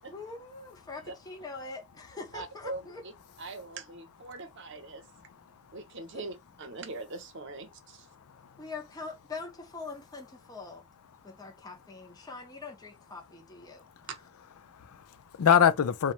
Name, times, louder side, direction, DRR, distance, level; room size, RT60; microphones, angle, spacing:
voice 1, 0.1-3.0 6.1-6.2 8.6-10.8 11.2-13.8, left 3 dB, 15° left, 0.5 m, -43 dB
voice 2, 2.3-3.1 3.4-5.0 5.7-8.1 14.1-14.2, right 3 dB, 55° right, 0.7 m, -42 dB
voice 3, 5.1-5.8 8.1-8.6 11.2-11.5 13.8-14.1 14.6-16.1, left 8 dB, 85° left, 0.4 m, -27 dB
3.0 x 2.2 x 2.4 m
head